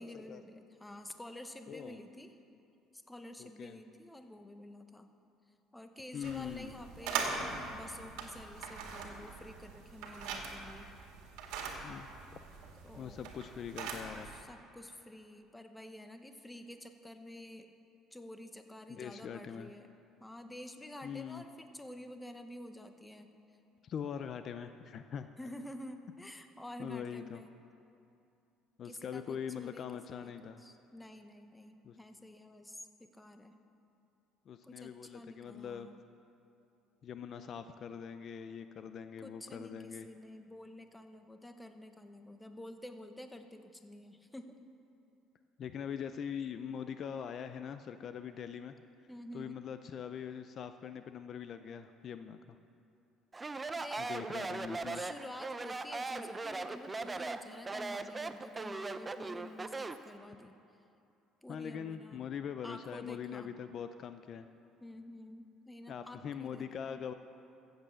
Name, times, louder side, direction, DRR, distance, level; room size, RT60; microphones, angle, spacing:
voice 1, 0.0-2.3 2.9-5.1 5.7-10.9 12.8-13.3 14.3-17.7 18.1-19.9 20.2-23.3 25.4-27.5 28.8-29.9 30.2-33.5 34.6-36.0 39.2-44.6 49.1-49.6 53.7-54.5 54.9-60.6 61.4-62.2 62.6-63.5 64.8-67.0, left 1 dB, 10° left, 7 dB, 0.9 m, -49 dB
voice 2, 1.7-2.0 3.4-3.8 6.1-6.8 11.8-12.4 13.0-14.4 18.9-19.7 21.0-21.4 23.8-25.3 26.8-27.4 28.8-30.6 31.8-32.0 34.5-35.9 37.0-40.1 45.6-48.7 49.3-52.6 54.0-55.0 61.5-64.5 65.9-67.1, left 8 dB, 45° left, 10 dB, 0.5 m, -42 dB
sound 1, 6.2-14.4, right 5 dB, 85° right, 1.9 m, -42 dB
Speech, 53.3-60.1, right 3 dB, 20° right, 0.6 m, -39 dB
15.0 x 8.1 x 7.6 m, 2.7 s
cardioid pair, 120°, 0 cm